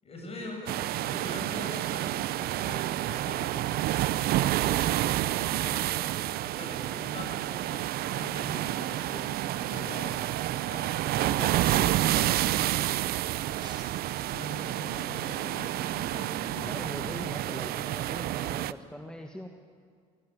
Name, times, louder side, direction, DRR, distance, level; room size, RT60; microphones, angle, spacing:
voice 1, 0.0-12.7 14.3-17.5, left 1 dB, 35° left, 2 dB, 7.4 m, -43 dB
sound 1, 0.7-18.7, right 14 dB, 65° right, 0.6 m, -29 dB
sound 2, 13.4-15.9 16.2-16.3, right 3 dB, 25° right, 3.0 m, -49 dB
voice 2, 16.6-19.5, equal, 5° left, 4 dB, 1.5 m, -41 dB
19.0 x 16.0 x 9.7 m, 2.1 s
supercardioid pair, 75°, 17 cm